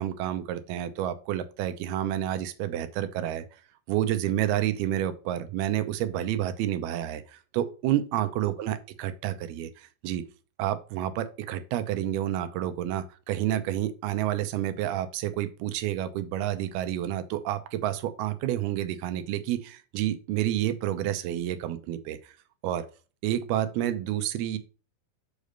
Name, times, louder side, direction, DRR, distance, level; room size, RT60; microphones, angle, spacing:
voice 1, 0.0-3.5 3.9-10.3 10.6-22.3 22.6-22.9 23.2-24.6, right 12 dB, 85° right, 10 dB, 2.7 m, -29 dB
6.7 x 6.2 x 5.1 m, 0.35 s
omnidirectional pair, 4.4 m